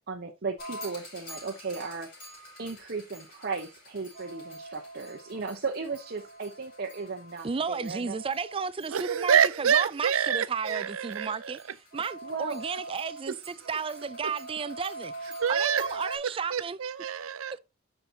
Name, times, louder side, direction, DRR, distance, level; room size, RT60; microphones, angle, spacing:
voice 1, 0.0-2.1 2.6-8.2 12.2-12.6, right 4 dB, 50° right, 0.8 m, -36 dB
sound 1, 0.6-16.2, right 2 dB, 45° left, 5.1 m, -44 dB
voice 2, 7.4-11.6 11.9-16.8, right 5 dB, 25° right, 0.4 m, -33 dB
voice 3, 8.9-11.6 13.3-13.4 15.4-16.0 16.5-17.6, right 7 dB, 75° right, 0.6 m, -27 dB
9.5 x 5.8 x 2.8 m
head